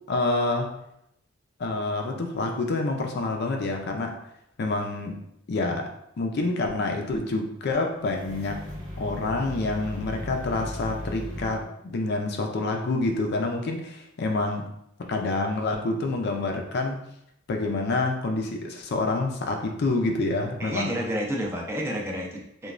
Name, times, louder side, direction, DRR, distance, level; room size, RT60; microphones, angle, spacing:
voice 1, 0.1-0.8 1.6-4.2 4.6-5.2 5.5-5.9 6.2-8.6 9.0-14.7 15.1-17.0 17.5-20.9, left 2 dB, 55° left, 3 dB, 0.4 m, -27 dB
sound 1, 8.0-11.6, left 1 dB, 75° right, 0.9 m, -37 dB
voice 2, 20.6-22.7, equal, 15° right, -1 dB, 0.5 m, -30 dB
3.0 x 2.2 x 2.4 m, 0.77 s
head